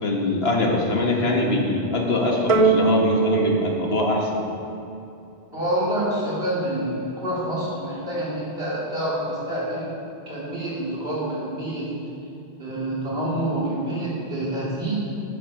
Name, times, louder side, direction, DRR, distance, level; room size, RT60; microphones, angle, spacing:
voice 1, 0.0-4.4, left 2 dB, 75° left, 0 dB, 1.7 m, -23 dB
sound 1, 2.5-5.1, right 4 dB, 40° right, 0.5 m, -22 dB
voice 2, 5.5-9.9 10.3-11.9 12.6-15.0, right 1 dB, 70° right, -7 dB, 3.3 m, -27 dB
11.5 x 8.9 x 4.9 m, 2.7 s
omnidirectional pair, 1.1 m